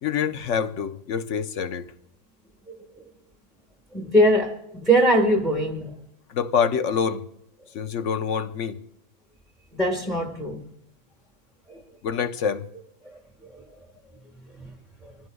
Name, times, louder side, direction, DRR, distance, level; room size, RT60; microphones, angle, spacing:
voice 1, 0.0-1.9 6.3-7.3 7.7-8.8 12.0-12.7, left 7 dB, 65° left, 1.1 m, -26 dB
voice 2, 3.9-5.9 9.7-10.7 11.7-11.8 13.5-13.6 14.6-14.7, right 1 dB, ahead, 1.4 m, -22 dB
25.0 x 16.0 x 2.3 m
omnidirectional pair, 1.4 m